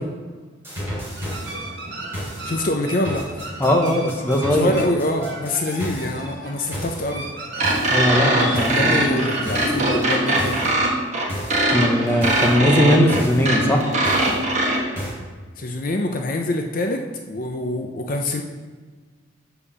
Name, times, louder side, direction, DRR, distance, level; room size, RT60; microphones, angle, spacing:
sound 1, 0.6-1.5 2.1-2.5 3.0-6.1 6.7-7.0 7.6-8.0 8.5-8.9 9.5-9.8 10.4-10.7 11.3-11.6 12.2-12.5 13.1-13.4 14.0-14.4 15.0-15.1, equal, 15° right, 2.7 m, -31 dB
sound 2, 1.2-10.8, right 2 dB, 65° right, 1.4 m, -35 dB
voice 1, 2.4-3.3 4.5-7.3 8.6-10.6 15.6-18.4, left 1 dB, 45° left, 3 dB, 0.6 m, -25 dB
voice 2, 3.6-4.7 7.9-9.3 11.7-13.9, equal, 10° left, 0 dB, 0.9 m, -19 dB
sound 3, 7.6-14.8, right 1 dB, 35° right, 1.4 m, -21 dB
6.8 x 5.4 x 6.9 m, 1.4 s
head